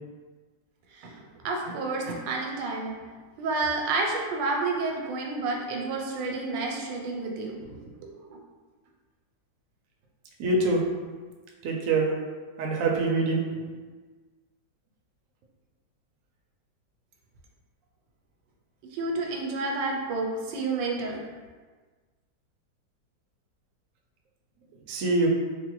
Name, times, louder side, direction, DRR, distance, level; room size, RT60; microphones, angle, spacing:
voice 1, 1.4-2.9 3.4-8.4 18.9-21.2, right 3 dB, 85° right, 0 dB, 1.3 m, -30 dB
voice 2, 10.4-10.8 11.6-12.1 12.6-13.4 24.9-25.3, right 3 dB, 70° right, -1 dB, 0.8 m, -24 dB
3.9 x 2.1 x 3.0 m, 1.4 s
omnidirectional pair, 1.9 m